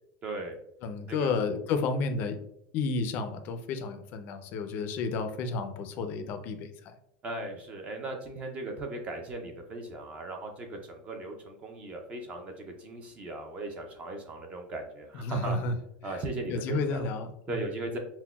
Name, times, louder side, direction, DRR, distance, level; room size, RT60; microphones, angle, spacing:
voice 1, 0.2-0.6 1.1-1.3 7.2-15.6 16.0-17.0 17.5-18.0, right 2 dB, 25° right, 3 dB, 0.4 m, -38 dB
voice 2, 0.8-2.4 2.7-7.0 15.1-15.7 16.0-17.7, left 3 dB, 40° left, 7 dB, 0.4 m, -32 dB
5.7 x 2.1 x 2.2 m, 0.77 s
supercardioid pair, 165°, 5 cm